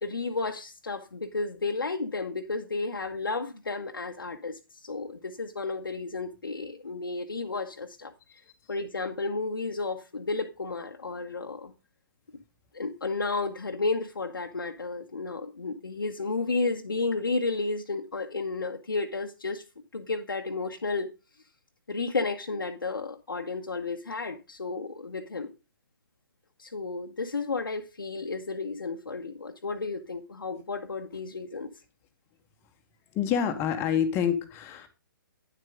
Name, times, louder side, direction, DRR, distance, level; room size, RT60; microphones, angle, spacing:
voice 1, 0.0-8.1 8.7-11.7 12.7-19.6 19.9-21.1 21.9-25.5 26.6-31.7, left 3 dB, 75° left, 1.1 m, -32 dB
voice 2, 33.1-34.9, left 8 dB, 20° left, 1.3 m, -27 dB
10.5 x 7.8 x 3.6 m
figure-of-eight pair, 125°, 12 cm